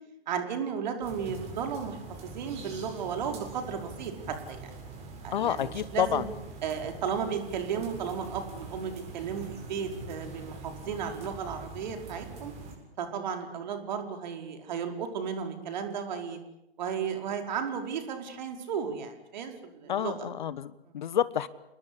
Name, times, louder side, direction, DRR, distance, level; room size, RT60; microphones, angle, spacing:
voice 1, 0.3-4.7 5.2-6.2 6.6-12.5 13.0-16.4 16.8-20.1, right 7 dB, 45° right, 5 dB, 5.1 m, -34 dB
sound 1, 1.0-12.8, right 3 dB, 20° right, 7.8 m, -44 dB
voice 2, 5.3-6.3 19.9-21.5, left 10 dB, 50° left, 17 dB, 1.3 m, -29 dB
29.5 x 20.5 x 8.5 m, 0.87 s
figure-of-eight pair, 125°, 31 cm